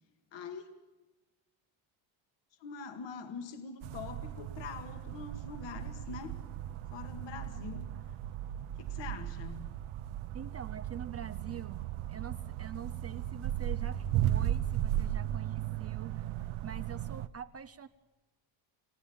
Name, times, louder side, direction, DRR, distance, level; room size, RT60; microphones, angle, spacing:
voice 1, 0.3-0.7 2.6-6.4 6.9-7.9 8.8-9.7, left 5 dB, 60° left, 6 dB, 2.1 m, -44 dB
sound 1, 3.8-17.3, right 12 dB, 75° right, 0.9 m, -36 dB
voice 2, 7.5-8.0 10.3-16.3 16.6-17.9, right 8 dB, 30° right, 11 dB, 0.6 m, -45 dB
29.0 x 16.0 x 7.2 m, 1.1 s
cardioid pair, 115°, 48 cm